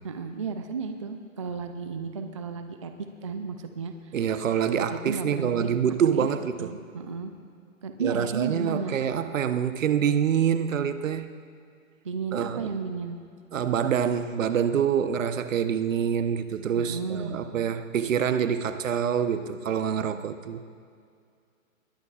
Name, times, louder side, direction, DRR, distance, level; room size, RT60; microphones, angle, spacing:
voice 1, 0.0-4.2 4.7-5.7 6.1-6.3 6.6-7.3 7.8-8.9 12.0-13.2 16.8-17.4, right 5 dB, 25° right, 7 dB, 0.4 m, -33 dB
voice 2, 4.1-6.7 8.0-11.3 12.3-12.7 13.5-20.6, right 8 dB, 65° right, 10 dB, 1.0 m, -26 dB
20.5 x 20.0 x 2.4 m, 2.3 s
hypercardioid pair, 140°, 42 cm